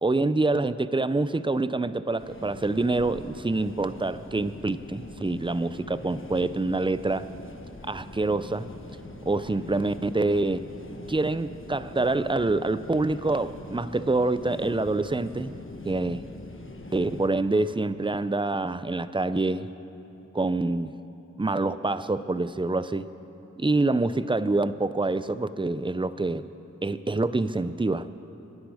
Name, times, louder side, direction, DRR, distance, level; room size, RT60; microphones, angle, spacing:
voice 1, 0.0-7.3 7.9-8.7 9.3-10.7 11.1-15.5 15.8-16.2 16.9-19.7 20.3-20.9 21.4-23.1 23.6-26.5 26.8-28.1, right 2 dB, 15° right, 14 dB, 0.5 m, -26 dB
sound 1, 2.2-17.3, left 2 dB, 45° left, 1.3 m, -43 dB
24.5 x 10.0 x 4.9 m, 3.0 s
wide cardioid pair, 50°, 30 cm